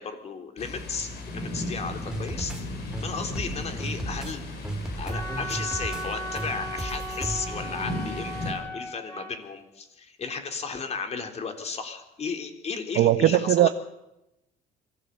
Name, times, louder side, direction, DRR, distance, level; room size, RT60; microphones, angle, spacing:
voice 1, 0.0-2.5 3.0-4.5 5.0-13.7, left 5 dB, 40° left, 3.6 m, -34 dB
Thunder, 0.6-8.5, left 1 dB, 70° left, 7.1 m, -36 dB
sound 1, 2.1-2.6 2.9-4.3 4.6-6.0 6.4-7.4, right 2 dB, 5° right, 2.9 m, -34 dB
Wind instrument woodwind instrument, 5.1-9.3, right 1 dB, 15° left, 4.0 m, -36 dB
voice 2, 13.0-13.7, right 13 dB, 70° right, 1.1 m, -19 dB
23.5 x 16.5 x 8.4 m
cardioid pair, 110°, 17 cm